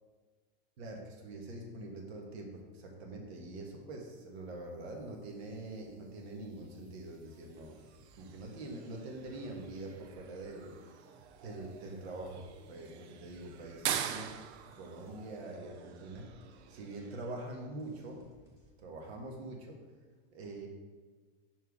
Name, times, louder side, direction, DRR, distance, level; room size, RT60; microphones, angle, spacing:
voice 1, 0.8-7.8 8.2-10.8 11.4-14.4 14.7-16.3 16.7-18.2 18.8-19.8 20.3-20.7, right 2 dB, 75° right, 1 dB, 1.5 m, -44 dB
sound 1, 5.4-17.3, right 9 dB, 90° right, 0.5 m, -45 dB
sound 2, 7.2-18.7, right 1 dB, 10° right, 1.2 m, -63 dB
5.6 x 4.6 x 4.7 m, 1.4 s
supercardioid pair, 155°, 32 cm